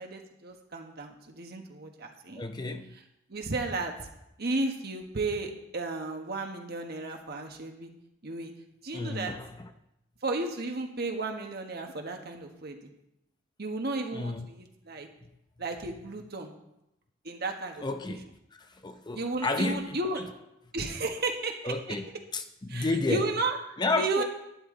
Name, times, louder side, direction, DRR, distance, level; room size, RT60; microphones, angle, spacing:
voice 1, 0.0-2.4 3.3-4.1 4.4-7.9 8.2-8.5 8.8-9.3 10.2-12.9 13.6-15.1 15.6-16.5 17.2-17.8 19.1-20.2 20.7-22.0 22.7-24.2, right 2 dB, 55° right, 3 dB, 1.4 m, -33 dB
voice 2, 2.3-2.9 8.9-9.7 14.1-14.5 17.8-18.3 18.5-20.2 21.6-22.0 22.3-23.2 23.8-24.2, left 2 dB, 20° left, 7 dB, 0.6 m, -31 dB
11.5 x 10.5 x 3.8 m, 0.85 s
head